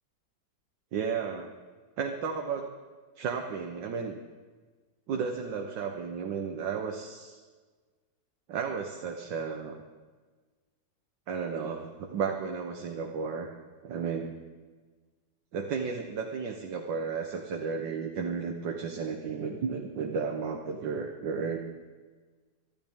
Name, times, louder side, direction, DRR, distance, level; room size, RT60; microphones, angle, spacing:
voice 1, 0.9-1.5 2.0-2.7 3.1-4.2 5.1-7.4 8.5-9.7 11.3-13.5 13.8-14.4 15.5-21.6, right 6 dB, 75° right, 3 dB, 1.7 m, -33 dB
24.5 x 12.5 x 3.6 m, 1.4 s
omnidirectional pair, 2.0 m